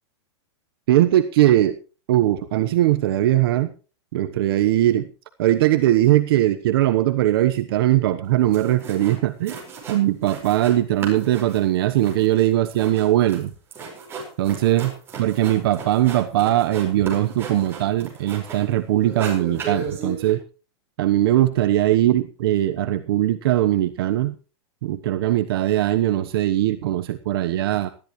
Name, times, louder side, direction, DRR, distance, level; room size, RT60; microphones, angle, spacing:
voice 1, 0.9-1.8 2.1-3.7 4.1-5.1 5.4-9.6 9.9-13.5 14.4-14.9 15.2-20.4 21.0-24.3 24.8-27.9, right 13 dB, 55° right, 9 dB, 1.1 m, -20 dB
sound 1, 8.2-8.3 8.5-9.2 9.5-10.8 11.0-18.7 19.0-20.3, right 4 dB, 15° right, 5.1 m, -35 dB
19.5 x 13.0 x 3.2 m, 0.35 s
supercardioid pair, 170°, 14 cm